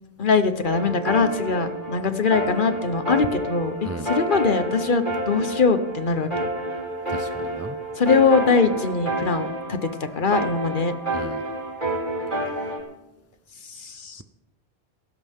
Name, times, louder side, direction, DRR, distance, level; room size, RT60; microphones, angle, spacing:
voice 1, 0.2-6.5 8.0-10.9 13.7-14.2, left 4 dB, 50° left, 9 dB, 1.2 m, -22 dB
sound 1, 0.6-12.8, right 1 dB, 50° right, 4.6 m, -29 dB
voice 2, 7.1-7.8 11.1-11.4, right 2 dB, 20° right, 9 dB, 0.4 m, -35 dB
18.5 x 15.5 x 3.6 m, 0.91 s
omnidirectional pair, 1.1 m